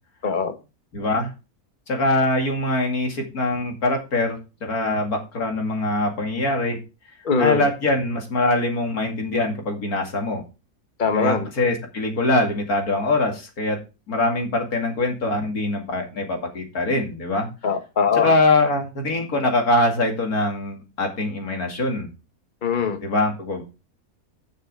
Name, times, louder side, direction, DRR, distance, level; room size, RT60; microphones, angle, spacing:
voice 1, 0.2-0.5 7.2-7.6 11.0-11.5 17.6-18.3 22.6-23.0, left 6 dB, 35° left, 7 dB, 1.4 m, -21 dB
voice 2, 0.9-1.3 1.9-6.8 7.4-10.4 11.1-13.8 14.1-17.5 18.1-22.1 23.0-23.6, left 2 dB, 70° left, 2 dB, 2.8 m, -23 dB
9.3 x 6.7 x 4.8 m, 0.29 s
omnidirectional pair, 1.6 m